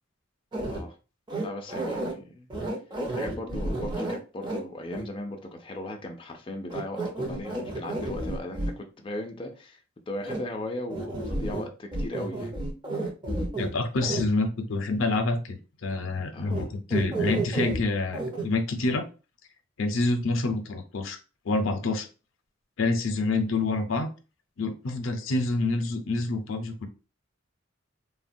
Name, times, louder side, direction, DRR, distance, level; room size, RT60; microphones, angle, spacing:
sound 1, 0.5-0.8 1.3-2.1 2.5-4.6 4.9-5.0 6.7-8.7 10.2-10.4 10.9-11.7 11.9-13.7 14.0-14.3 16.5-16.6 16.9-17.8 18.1-18.4, right 2 dB, 25° right, 0.6 m, -31 dB
voice 1, 0.6-1.0 1.4-2.5 3.1-9.8 10.1-12.5 16.3-16.7, left 1 dB, 25° left, 0.4 m, -37 dB
voice 2, 13.6-15.6 15.8-19.1 19.8-21.2 21.5-22.1 22.8-24.1 24.6-26.9, left 3 dB, 80° left, 0.5 m, -27 dB
3.5 x 2.1 x 2.5 m
head